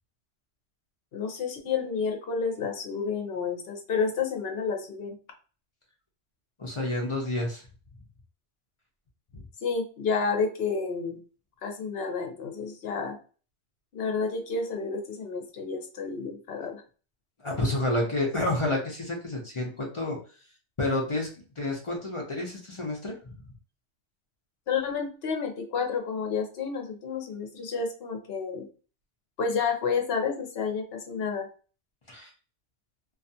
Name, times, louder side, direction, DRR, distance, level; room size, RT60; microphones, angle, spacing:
voice 1, 1.1-5.2 9.6-11.2 11.6-13.2 13.9-16.8 24.7-28.7 29.4-31.5, left 5 dB, 60° left, 3 dB, 0.9 m, -30 dB
voice 2, 6.6-7.6 17.4-20.2 20.8-21.3 21.6-23.4 32.1-32.3, left 2 dB, 40° left, -1 dB, 0.4 m, -29 dB
2.4 x 2.3 x 2.7 m, 0.37 s
omnidirectional pair, 1.2 m